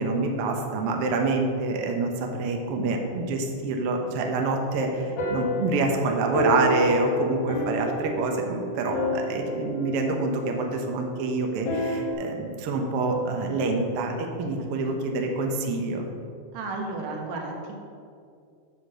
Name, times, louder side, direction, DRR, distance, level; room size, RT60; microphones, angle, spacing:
voice 1, 0.0-14.1 14.4-16.1, right 3 dB, 60° right, 2 dB, 1.6 m, -27 dB
sound 1, 4.7-12.1, left 1 dB, 50° left, 1.4 m, -30 dB
voice 2, 14.5-15.0 16.5-17.8, right 3 dB, 85° right, -1 dB, 3.1 m, -34 dB
10.0 x 5.9 x 6.6 m, 2.3 s
omnidirectional pair, 3.7 m